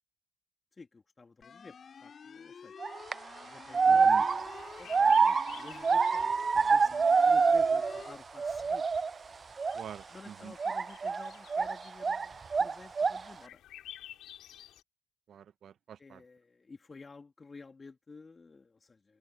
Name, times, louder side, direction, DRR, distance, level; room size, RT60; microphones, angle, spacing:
voice 1, 0.7-1.8 2.0-2.7 3.4-8.9 10.1-13.6 16.0-19.2, left 4 dB, 30° left, 2.9 m, -52 dB
sound 1, 1.4-8.2, left 6 dB, 45° left, 4.6 m, -50 dB
sound 2, 2.8-3.1 3.7-8.1 8.4-9.1 9.6-9.8 10.6-12.3 12.5-13.3, right 5 dB, 35° right, 0.4 m, -26 dB
sound 3, 3.8-14.8, left 12 dB, 65° left, 2.6 m, -54 dB
voice 2, 3.9-4.2 9.7-10.5 15.3-16.2, right 9 dB, 55° right, 1.1 m, -47 dB
supercardioid pair, 70°, 0 cm